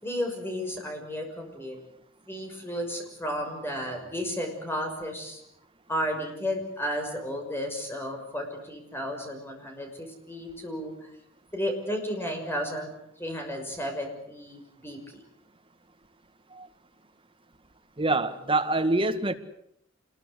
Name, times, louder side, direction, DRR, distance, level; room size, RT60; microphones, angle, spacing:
voice 1, 0.0-1.8 2.3-5.4 5.9-11.1 11.5-12.9 13.2-15.2, equal, 10° left, 3 dB, 6.2 m, -33 dB
voice 2, 18.0-19.3, right 2 dB, 25° right, 7 dB, 1.9 m, -25 dB
27.0 x 21.5 x 8.2 m, 0.72 s
head